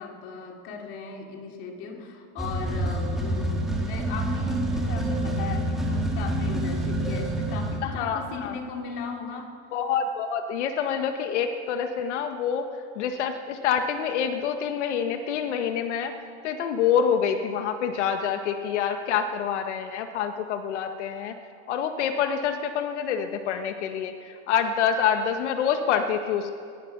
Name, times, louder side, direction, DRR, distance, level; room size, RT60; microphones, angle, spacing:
voice 1, 0.0-9.6, left 5 dB, 35° left, 2 dB, 2.9 m, -37 dB
sound 1, 2.4-7.8, right 1 dB, ahead, 2.3 m, -27 dB
voice 2, 7.8-8.5 9.7-16.1 16.4-21.4 21.7-26.6, left 7 dB, 80° left, 6 dB, 1.6 m, -27 dB
21.5 x 21.0 x 6.1 m, 2.3 s
supercardioid pair, 180°, 35 cm